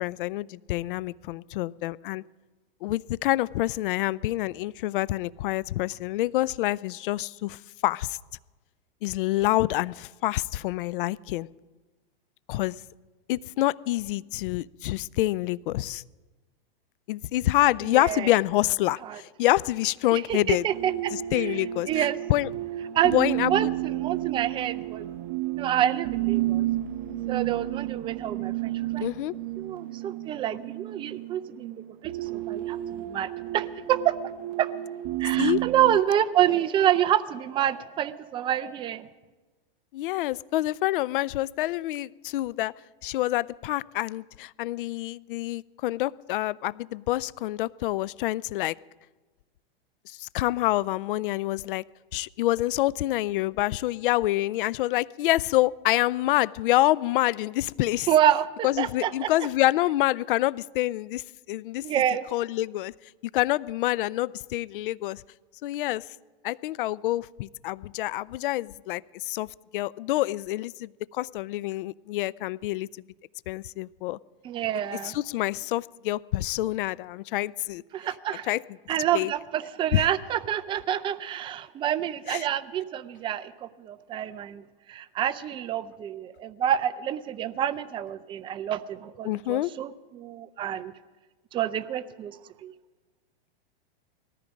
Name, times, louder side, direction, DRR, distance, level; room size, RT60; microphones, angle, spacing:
voice 1, 0.0-2.2 2.8-8.2 9.0-11.5 12.5-12.8 13.3-16.0 17.1-20.6 21.3-22.5 23.1-23.7 29.0-29.3 35.4-35.6 39.9-42.7 43.0-48.8 50.1-51.8 52.1-58.1 58.6-61.2 61.5-61.8 62.3-62.9 63.3-65.2 65.6-66.1 66.4-69.5 69.7-72.9 73.5-74.2 75.0-77.8 78.5-78.6 79.1-79.3 79.9-80.0 82.3-82.5 89.2-89.7, left 16 dB, 65° left, 22 dB, 0.4 m, -27 dB
voice 2, 17.8-18.3 19.0-19.2 20.1-22.2 22.9-23.2 23.5-25.1 25.5-26.7 27.3-29.1 29.6-34.2 34.6-34.7 35.2-39.1 58.1-59.5 61.8-62.3 74.4-75.2 77.9-78.5 78.9-90.9 91.5-92.7, right 11 dB, 15° right, 12 dB, 0.4 m, -28 dB
sound 1, 20.7-36.0, right 16 dB, 45° right, 0.8 m, -31 dB
19.0 x 14.0 x 5.2 m, 1.3 s
hypercardioid pair, 135°, 29 cm